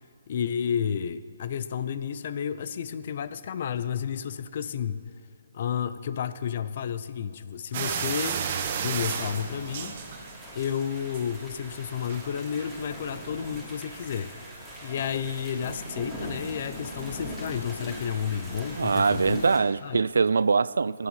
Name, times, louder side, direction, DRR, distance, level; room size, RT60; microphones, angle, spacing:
voice 1, 0.3-5.1 5.5-8.4 8.8-10.0 10.5-14.3 14.8-19.4 19.8-20.0, left 8 dB, 50° left, 0.6 m, -31 dB
sound 1, 7.7-10.6 11.0-11.4 12.1-12.2 12.6-12.7, right 7 dB, 40° right, 1.1 m, -32 dB
sound 2, 7.9-19.6, right 1 dB, 5° left, 3.0 m, -41 dB
voice 2, 18.8-21.1, right 4 dB, 75° right, 0.3 m, -23 dB
16.5 x 9.7 x 5.6 m
hypercardioid pair, 145°, 0 cm